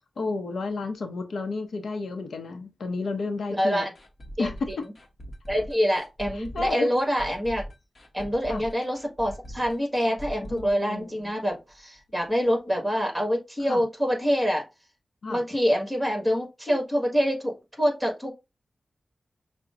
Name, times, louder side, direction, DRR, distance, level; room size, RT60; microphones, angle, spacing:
voice 1, 0.2-3.9 4.4-4.9 6.4-6.9 8.5-8.6 10.5-11.3 13.7-13.8 15.2-15.4, left 3 dB, 85° left, 0.7 m, -32 dB
voice 2, 3.5-3.9 4.4-4.8 5.5-7.6 8.1-14.7 15.3-18.3, equal, 10° right, 1.8 m, -26 dB
sound 1, 3.9-11.7 11.9-12.0 12.4-12.5, equal, 40° left, 1.0 m, -42 dB
5.8 x 2.2 x 2.5 m
wide cardioid pair, 105°, 0 cm